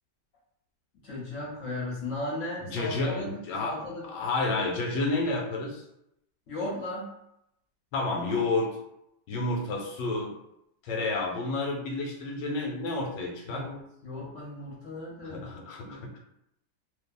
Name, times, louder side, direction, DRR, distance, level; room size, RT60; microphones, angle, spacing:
voice 1, 1.0-3.3 3.6-4.0 6.5-7.1 13.5-15.4 15.8-16.0, left 2 dB, 65° left, -5 dB, 0.8 m, -36 dB
voice 2, 2.6-5.8 7.9-8.8 9.3-10.3 10.8-13.7 15.2-16.2, left 2 dB, 90° left, 1 dB, 1.2 m, -30 dB
2.6 x 2.5 x 2.3 m, 0.79 s
omnidirectional pair, 1.9 m